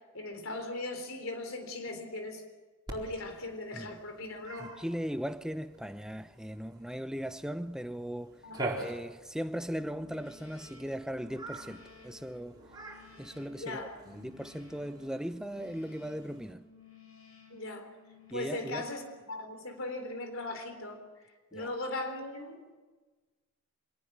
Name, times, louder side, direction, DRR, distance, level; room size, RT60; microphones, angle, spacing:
voice 1, 0.1-2.4 2.9-4.7 8.4-8.6 13.6-14.0 17.5-17.9 18.3-19.0 19.3-21.0 21.5-22.7, left 2 dB, 70° left, 3.7 m, -38 dB
Cat, 2.9-16.5, right 2 dB, 20° right, 4.4 m, -46 dB
voice 2, 4.6-8.4 8.8-12.6 13.2-16.7 18.3-18.9 21.5-21.8, equal, 5° right, 0.8 m, -38 dB
sound 1, 9.6-19.5, left 4 dB, 90° left, 6.6 m, -57 dB
26.0 x 18.5 x 7.5 m
head